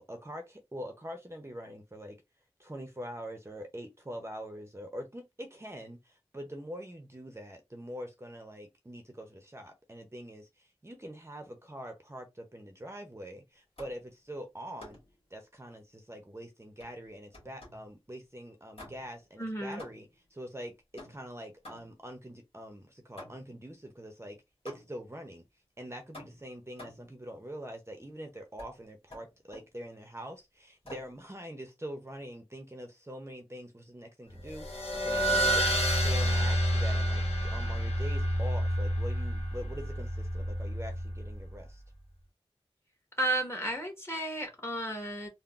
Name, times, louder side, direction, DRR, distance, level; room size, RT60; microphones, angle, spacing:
voice 1, 0.0-2.2 2.6-15.0 15.3-24.4 24.6-25.5 25.8-35.7 36.0-41.8, equal, 25° right, 0.6 m, -44 dB
sound 1, 13.8-14.1 14.8-15.2 16.8-17.9 18.7-19.3 19.8-20.3 21.0-22.1 23.2-23.6 24.7-25.1 26.1-27.2 28.6-28.8 29.1-29.8 30.8-31.2, left 1 dB, 65° left, 1.5 m, -50 dB
voice 2, 19.4-19.8 43.2-45.3, right 1 dB, 25° left, 1.3 m, -33 dB
sound 2, 34.4-41.5, equal, 90° left, 0.8 m, -29 dB
3.6 x 2.1 x 2.4 m
wide cardioid pair, 40°, 10 cm